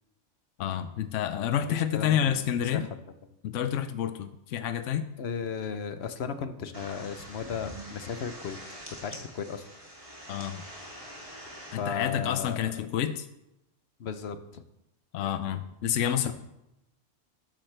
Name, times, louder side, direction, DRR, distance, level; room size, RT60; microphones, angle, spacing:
voice 1, 0.6-2.9 3.4-5.1 10.3-10.6 11.7-13.3 15.1-16.3, left 9 dB, 85° left, 11 dB, 0.9 m, -29 dB
voice 2, 1.7-3.0 5.2-8.6 9.0-9.6 11.8-12.6 14.0-14.6 16.3-16.4, left 6 dB, 60° left, 10 dB, 1.0 m, -35 dB
sound 1, 6.7-11.8, equal, 25° right, 2.8 m, -44 dB
12.5 x 10.0 x 3.3 m, 0.88 s
omnidirectional pair, 1.3 m